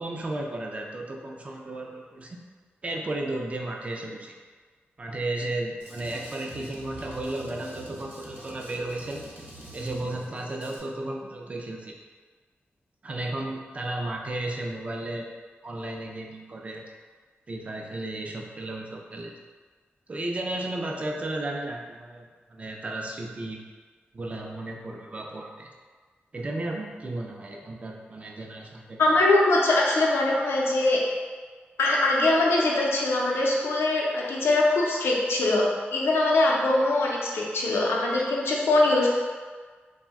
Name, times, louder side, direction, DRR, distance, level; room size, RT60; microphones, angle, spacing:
voice 1, 0.0-2.4 2.8-4.3 5.0-9.2 9.7-11.9 13.0-15.3 15.6-16.8 17.5-19.3 20.1-23.6 24.1-25.7 26.3-29.0, right 2 dB, 35° right, 0 dB, 0.4 m, -34 dB
Drum kit, 5.8-10.8, right 1 dB, 55° right, 0.8 m, -45 dB
voice 2, 29.0-31.0 31.8-35.6 35.9-39.1, left 2 dB, 80° left, -3 dB, 0.5 m, -22 dB
2.5 x 2.1 x 3.5 m, 1.5 s
cardioid pair, 80°, 4 cm